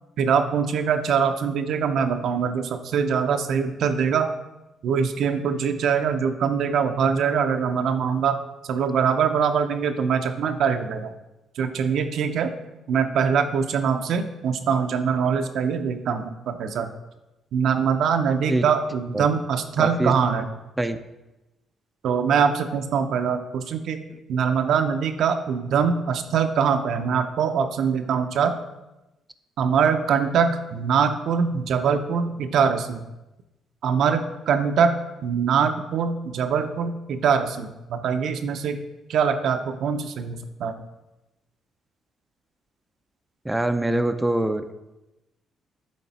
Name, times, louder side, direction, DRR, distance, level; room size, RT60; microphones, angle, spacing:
voice 1, 0.2-4.3 4.8-11.1 11.6-12.5 12.9-16.9 17.5-20.5 22.0-24.0 24.3-28.5 29.6-33.0 33.8-34.9 35.2-38.8 39.1-40.7, right 6 dB, 75° right, 7 dB, 0.5 m, -23 dB
voice 2, 19.8-20.1 20.8-21.0 43.5-44.6, right 1 dB, 10° right, 8 dB, 0.4 m, -23 dB
8.5 x 3.3 x 4.1 m, 0.99 s
cardioid pair, 90°, 0 cm